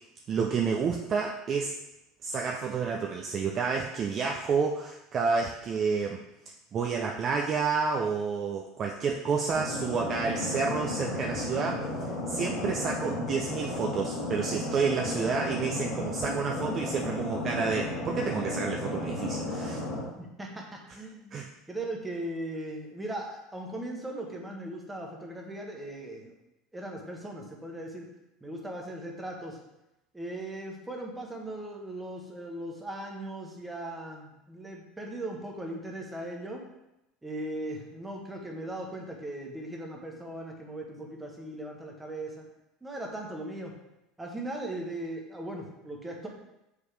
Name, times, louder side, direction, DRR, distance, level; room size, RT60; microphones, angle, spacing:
voice 1, 0.3-1.8 2.2-6.2 6.7-19.8 21.3-21.5, right 5 dB, 25° right, 1 dB, 0.4 m, -30 dB
sound 1, 9.5-20.0, left 2 dB, 55° left, 1.9 m, -34 dB
voice 2, 20.2-21.4 21.7-26.3 26.7-28.1 28.4-29.6 30.1-36.7 37.2-42.4 42.8-43.7 44.2-46.3, right 1 dB, 5° right, 0 dB, 0.9 m, -38 dB
7.1 x 4.9 x 3.3 m, 0.89 s
cardioid pair, 170°, 0 cm